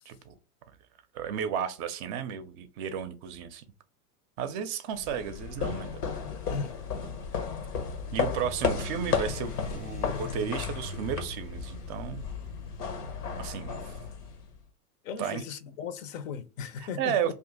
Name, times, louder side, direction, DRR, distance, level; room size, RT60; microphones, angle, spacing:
voice 1, 1.1-3.6 4.4-5.9 8.1-12.3 13.4-14.0 15.2-15.4 16.8-17.3, right 8 dB, 35° right, 0.5 m, -33 dB
sound 1, 5.0-14.6, left 6 dB, 90° left, 0.9 m, -34 dB
voice 2, 6.2-6.8 15.0-17.3, left 6 dB, 60° left, 0.6 m, -37 dB
sound 2, 7.7-13.2, left 4 dB, 15° left, 0.5 m, -44 dB
2.7 x 2.5 x 3.7 m
hypercardioid pair, 105°, 45 cm